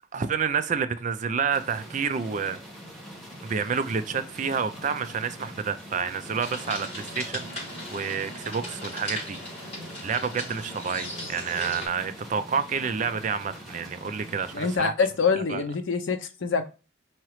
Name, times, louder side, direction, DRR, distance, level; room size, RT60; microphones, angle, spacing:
voice 1, 0.1-2.6 3.4-9.7 10.0-14.9 15.5-15.6, right 6 dB, 40° right, 0.4 m, -29 dB
sound 1, 1.5-14.8, equal, ahead, 1.1 m, -43 dB
sound 2, 6.4-11.9, left 1 dB, 30° left, 2.6 m, -38 dB
voice 2, 14.5-16.7, left 5 dB, 80° left, 0.6 m, -25 dB
4.8 x 2.9 x 3.0 m
head